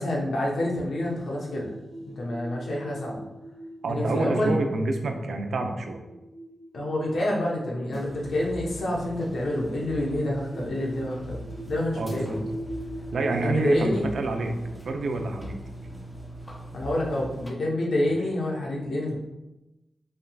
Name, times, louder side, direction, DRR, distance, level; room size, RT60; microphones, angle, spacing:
voice 1, 0.0-1.7 2.1-3.2 3.8-4.6 6.7-11.4 11.7-12.4 13.2-14.0 16.7-19.2, left 1 dB, 80° left, -3 dB, 1.0 m, -28 dB
sound 1, 1.0-17.3, right 1 dB, 25° right, 1.0 m, -43 dB
voice 2, 3.8-6.0 12.0-12.4 13.1-14.5 14.9-15.6 18.1-18.2, right 2 dB, 80° right, 4 dB, 0.5 m, -28 dB
sound 2, 7.9-17.5, right 1 dB, 15° left, 0.7 m, -40 dB
5.4 x 3.6 x 2.4 m, 1.0 s
cardioid pair, 55°, 0 cm